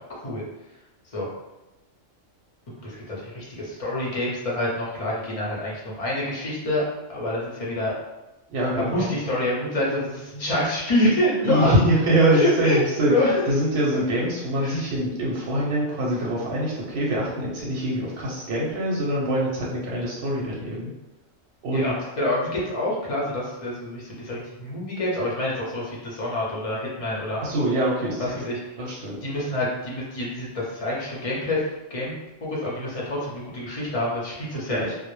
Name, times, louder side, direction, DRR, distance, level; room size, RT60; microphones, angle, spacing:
voice 1, 2.8-6.8 7.1-7.9 8.7-11.7 12.3-12.8 13.1-13.4 14.6-14.8 21.7-27.4 28.3-28.6 29.2-31.6 31.9-32.2 32.4-35.0, left 1 dB, 40° left, -5 dB, 0.5 m, -27 dB
voice 2, 8.5-9.1 11.4-13.1 13.5-20.9 21.6-21.9 27.4-28.4 28.8-29.2 34.7-34.9, right 1 dB, 65° right, -4 dB, 0.8 m, -24 dB
2.0 x 2.0 x 3.0 m, 1.0 s
omnidirectional pair, 1.3 m